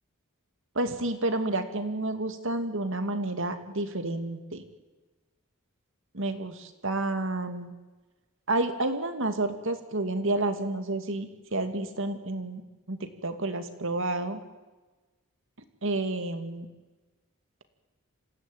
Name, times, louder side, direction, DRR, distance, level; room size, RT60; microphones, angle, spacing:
voice 1, 0.7-4.6 6.1-7.7 8.5-12.6 12.9-14.4 15.8-16.7, right 2 dB, 65° right, 8 dB, 2.5 m, -30 dB
27.0 x 16.0 x 9.3 m, 1.2 s
head